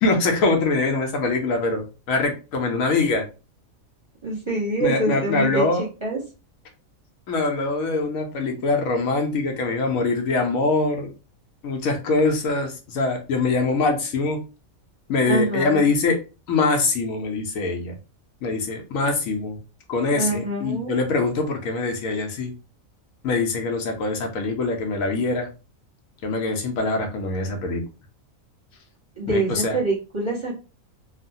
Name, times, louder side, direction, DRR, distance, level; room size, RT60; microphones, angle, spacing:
voice 1, 0.0-3.2 4.8-5.8 7.3-11.1 11.6-14.4 15.1-16.2 16.5-17.9 18.4-19.6 19.9-22.5 23.2-25.5 26.2-27.8 29.3-29.8, left 3 dB, 80° left, 4 dB, 1.1 m, -23 dB
voice 2, 4.2-5.6 6.0-6.2 15.3-15.9 20.1-20.9 29.2-30.6, right 2 dB, 25° right, -3 dB, 0.9 m, -25 dB
3.1 x 2.1 x 2.6 m, 0.32 s
omnidirectional pair, 1.4 m